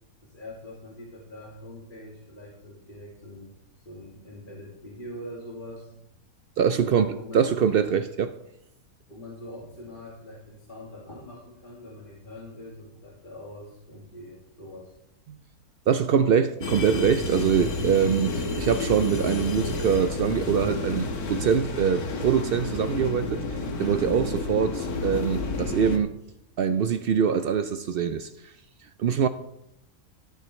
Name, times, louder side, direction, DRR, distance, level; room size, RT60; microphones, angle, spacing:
voice 1, 0.2-3.5 3.8-5.9 6.7-7.9 9.1-14.9 25.8-25.9, left 1 dB, 35° left, 2.3 m, -43 dB
voice 2, 6.6-8.4 15.3-15.4 15.9-23.4 23.8-26.1 26.6-28.3 29.0-29.3, right 7 dB, 85° right, 0.5 m, -24 dB
sound 1, 16.6-26.0, left 3 dB, 85° left, 1.7 m, -30 dB
12.0 x 11.5 x 3.1 m
omnidirectional pair, 1.5 m